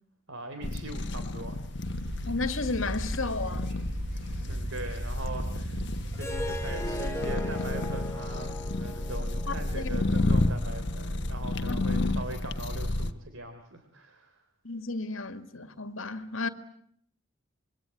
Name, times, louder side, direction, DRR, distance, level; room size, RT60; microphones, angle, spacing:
voice 1, 0.3-1.8 4.1-5.8 6.1-14.4, right 2 dB, 70° right, 3.5 m, -41 dB
sound 1, 0.6-13.1, left 2 dB, 55° left, 1.3 m, -31 dB
sound 2, 1.8-7.0, equal, 50° right, 5.9 m, -36 dB
voice 2, 2.3-3.7 9.5-10.3 11.7-11.8 14.6-16.5, left 3 dB, 75° left, 2.1 m, -33 dB
Harp, 6.1-11.3, left 1 dB, 15° left, 2.1 m, -39 dB
26.0 x 23.5 x 9.6 m
head